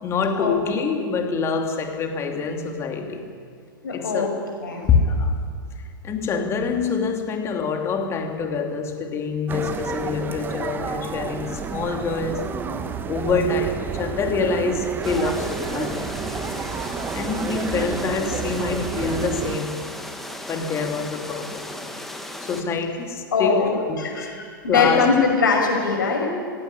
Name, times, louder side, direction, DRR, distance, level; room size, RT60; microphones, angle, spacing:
voice 1, 0.0-3.3 3.9-4.3 4.9-5.4 6.0-12.4 13.1-16.4 17.1-19.8 20.5-21.7 22.4-23.6 23.9-24.4 24.7-25.1, left 4 dB, 25° left, 4 dB, 2.7 m, -25 dB
voice 2, 3.8-4.3 4.6-4.8 23.3-26.3, left 5 dB, 65° left, 1 dB, 6.0 m, -21 dB
sound 1, 9.5-19.6, right 5 dB, 15° right, 1.3 m, -30 dB
sound 2, 15.0-22.6, left 1 dB, ahead, 1.8 m, -36 dB
19.0 x 16.0 x 10.0 m, 2.1 s
figure-of-eight pair, 100°, 11 cm